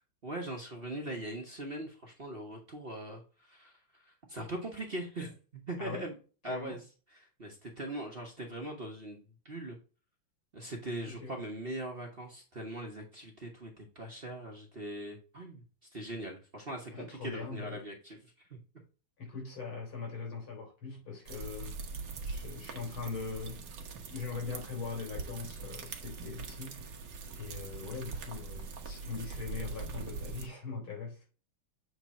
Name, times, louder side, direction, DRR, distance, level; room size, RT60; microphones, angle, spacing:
voice 1, 0.2-6.1 6.4-6.8 7.1-9.8 10.5-15.6 15.9-18.6, right 1 dB, 35° right, 1.2 m, -41 dB
voice 2, 6.5-6.8 11.1-11.3 16.9-17.8 19.2-21.8 22.2-23.7 24.1-26.9 27.4-31.3, left 4 dB, 80° left, 4.1 m, -41 dB
sound 1, 21.3-30.5, right 4 dB, 60° right, 1.6 m, -42 dB
7.9 x 3.4 x 4.2 m
omnidirectional pair, 2.2 m